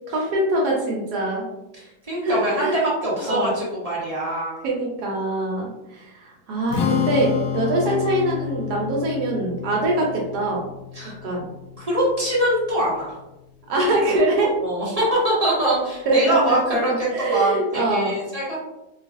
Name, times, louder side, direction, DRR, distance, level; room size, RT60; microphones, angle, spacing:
voice 1, 0.1-1.5 2.2-2.9 3.3-3.6 4.6-10.6 11.0-11.5 13.7-14.6 16.1-16.8 17.1-18.1, right 2 dB, 70° right, -2 dB, 1.1 m, -23 dB
voice 2, 1.8-4.6 10.9-11.2 11.8-13.1 14.6-18.6, right 1 dB, 35° right, -7 dB, 0.6 m, -23 dB
Strum, 6.7-13.0, left 9 dB, 80° left, 0.7 m, -29 dB
3.1 x 2.3 x 2.5 m, 0.93 s
omnidirectional pair, 2.0 m